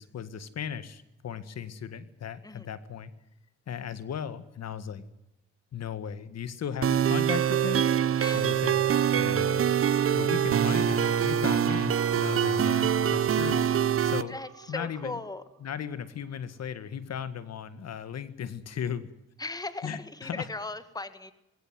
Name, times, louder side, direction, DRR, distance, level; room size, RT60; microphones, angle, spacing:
voice 1, 0.0-3.1 3.7-5.0 5.7-7.8 8.3-8.8 9.1-9.7 10.1-13.7 14.0-14.3 14.7-15.1 15.6-19.1 19.8-20.5, left 8 dB, 60° left, 13 dB, 1.8 m, -36 dB
sound 1, 6.8-14.2, right 9 dB, 45° right, 1.0 m, -24 dB
voice 2, 8.2-8.5 14.3-15.4 19.4-21.3, left 2 dB, 10° left, 12 dB, 1.8 m, -38 dB
sound 2, 10.5-15.8, right 8 dB, 65° right, 2.0 m, -43 dB
21.5 x 17.5 x 9.3 m, 0.87 s
cardioid pair, 90°, 30 cm